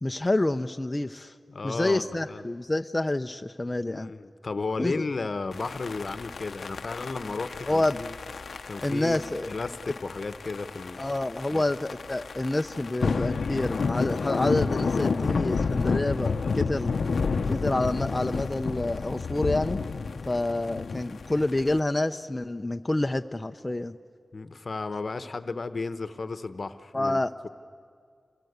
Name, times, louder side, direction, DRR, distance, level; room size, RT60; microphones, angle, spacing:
voice 1, 0.0-1.3 1.6-4.1 4.8-5.1 7.7-8.0 8.8-9.5 11.0-16.9 17.5-19.8 20.3-24.0 26.9-27.5, left 2 dB, 25° left, 6 dB, 0.7 m, -28 dB
voice 2, 1.5-2.4 3.9-8.1 8.7-9.2 9.5-11.1 11.5-11.6 24.3-27.2, left 3 dB, 60° left, 11 dB, 1.0 m, -34 dB
sound 1, 5.5-21.8, left 4 dB, 80° left, 0.7 m, -30 dB
28.5 x 22.5 x 8.1 m, 2.1 s
cardioid pair, 50°, 0 cm